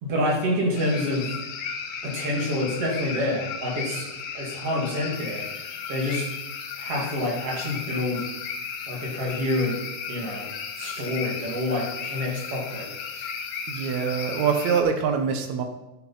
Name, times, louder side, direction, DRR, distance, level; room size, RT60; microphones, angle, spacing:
voice 1, 0.0-1.3 2.0-4.1 4.3-5.4 5.9-6.3 6.8-8.3 8.9-9.8 10.1-10.5 10.8-12.9, left 1 dB, 50° right, -1 dB, 3.1 m, -27 dB
sound 1, 0.8-14.8, left 6 dB, 70° left, 2.4 m, -35 dB
voice 2, 13.7-15.6, right 6 dB, 65° right, 6 dB, 2.2 m, -24 dB
10.0 x 7.1 x 5.6 m, 1.0 s
omnidirectional pair, 3.7 m